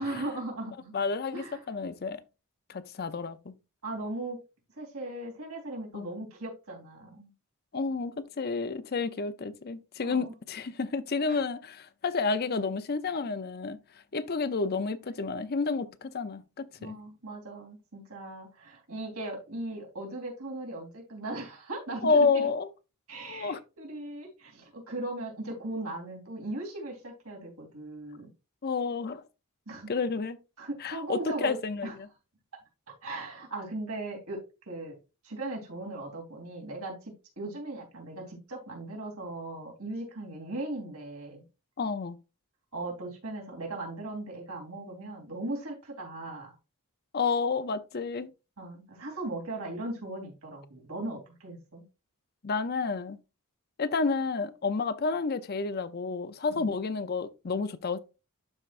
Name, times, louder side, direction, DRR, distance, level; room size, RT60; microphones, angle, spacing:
voice 1, 0.0-0.9 1.3-1.6 3.8-4.4 4.8-7.3 10.0-10.3 11.3-11.4 16.8-22.5 23.1-28.3 29.7-29.9 30.6-31.9 33.0-34.4 34.7-34.9 35.2-41.4 42.7-46.5 48.6-51.8 56.6-56.7, right 2 dB, 80° right, 3.2 m, -38 dB
voice 2, 0.9-2.2 2.7-3.5 5.9-6.1 7.7-13.8 14.1-17.0 22.0-22.7 23.3-23.6 28.6-29.2 29.9-30.4 30.8-32.1 41.8-42.2 47.1-48.3 52.4-53.2 53.8-58.0, left 4 dB, 45° left, 0.6 m, -30 dB
12.0 x 4.4 x 2.5 m
head